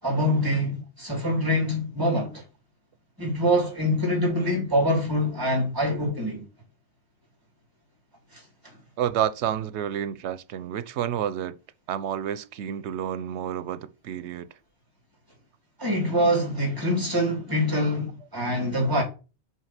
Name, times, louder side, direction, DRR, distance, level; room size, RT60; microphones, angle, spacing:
voice 1, 0.0-2.4 3.2-6.4 8.3-8.4 15.8-19.0, equal, 20° right, 3.0 m, -25 dB
voice 2, 9.0-11.5 11.9-14.5 16.2-16.3, right 10 dB, 85° right, 0.9 m, -30 dB
6.3 x 4.8 x 5.8 m
omnidirectional pair, 1.1 m